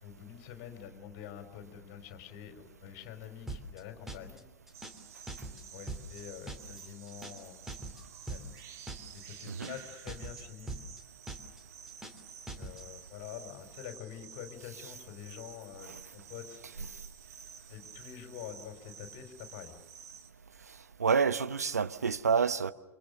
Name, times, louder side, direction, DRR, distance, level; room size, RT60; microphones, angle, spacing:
voice 1, 0.0-4.4 5.4-7.8 8.3-8.5 9.1-10.8 12.5-16.9 17.7-19.7, left 10 dB, 40° left, 4.6 m, -47 dB
sound 1, 3.5-3.8 4.1-4.4 4.7-5.0 5.3-5.6 5.9-6.2 6.5-6.8 7.1-7.4 7.7-8.0 8.3-8.6 8.9-9.2 9.5-9.8 10.1-10.4 10.7-11.0 11.3-11.6 11.9-12.2 12.5-12.8, right 2 dB, 5° right, 3.0 m, -42 dB
sound 2, 4.7-20.3, right 8 dB, 35° right, 2.1 m, -52 dB
voice 2, 21.0-22.7, right 6 dB, 75° right, 1.0 m, -28 dB
29.0 x 26.5 x 6.8 m
figure-of-eight pair, 95°, 9 cm